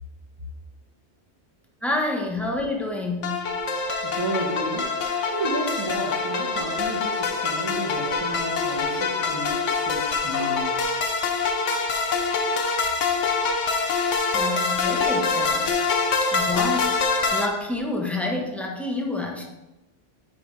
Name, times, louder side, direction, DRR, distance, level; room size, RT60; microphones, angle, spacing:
voice 1, 1.8-3.5 14.3-15.7 16.2-19.4, left 2 dB, ahead, -1 dB, 0.9 m, -28 dB
sound 1, 3.2-17.5, left 4 dB, 85° left, 1.2 m, -25 dB
voice 2, 4.0-4.9 5.3-11.0, right 2 dB, 20° right, -5 dB, 1.0 m, -32 dB
9.3 x 5.4 x 3.2 m, 0.98 s
omnidirectional pair, 1.2 m